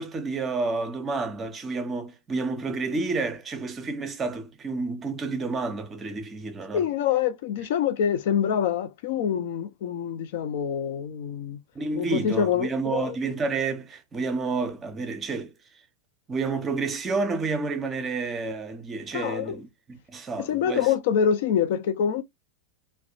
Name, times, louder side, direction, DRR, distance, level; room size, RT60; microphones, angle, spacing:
voice 1, 0.0-6.9 11.7-15.5 16.3-20.9, right 3 dB, 20° right, 0.5 m, -30 dB
voice 2, 6.7-11.6 11.9-13.1 19.1-19.6 20.4-22.2, left 8 dB, 55° left, 0.4 m, -26 dB
2.4 x 2.1 x 2.6 m
figure-of-eight pair, 90°, 0 cm